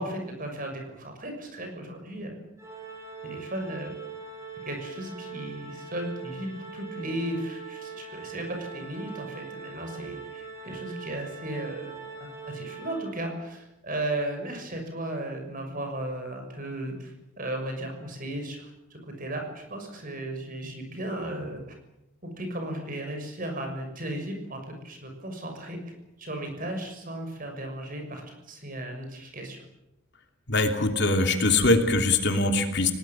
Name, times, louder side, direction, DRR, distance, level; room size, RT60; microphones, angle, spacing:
voice 1, 0.0-2.4 3.2-3.9 4.6-21.6 22.2-25.8 26.2-29.6, right 1 dB, 40° right, 4 dB, 6.4 m, -35 dB
Organ, 2.6-13.5, right 5 dB, 15° right, 6.5 m, -42 dB
voice 2, 30.5-32.9, left 2 dB, 50° left, 5 dB, 3.0 m, -22 dB
30.0 x 19.5 x 7.5 m, 0.87 s
head